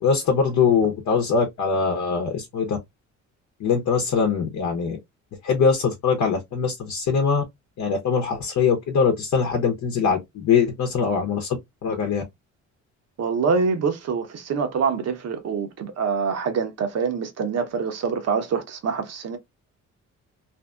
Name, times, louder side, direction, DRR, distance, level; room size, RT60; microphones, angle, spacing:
voice 1, 0.0-2.8 3.6-5.0 5.4-7.4 7.8-11.5 11.8-12.2, left 6 dB, 65° left, 0.9 m, -22 dB
voice 2, 13.2-19.4, right 5 dB, 60° right, 0.8 m, -25 dB
2.7 x 2.6 x 2.3 m
cardioid pair, 90°, 30 cm